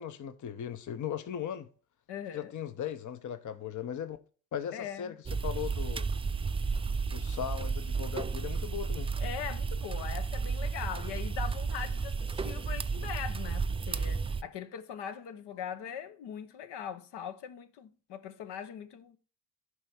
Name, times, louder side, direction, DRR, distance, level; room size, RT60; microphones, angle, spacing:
voice 1, 0.0-1.7 2.3-4.2 4.5-5.2 5.4-6.1 7.1-9.1, left 9 dB, 40° left, 0.9 m, -38 dB
voice 2, 2.1-2.5 4.7-5.1 9.2-19.2, left 8 dB, 65° left, 1.0 m, -41 dB
sound 1, 5.3-14.4, right 4 dB, 15° right, 0.3 m, -33 dB
11.5 x 4.8 x 4.3 m
supercardioid pair, 70°, 44 cm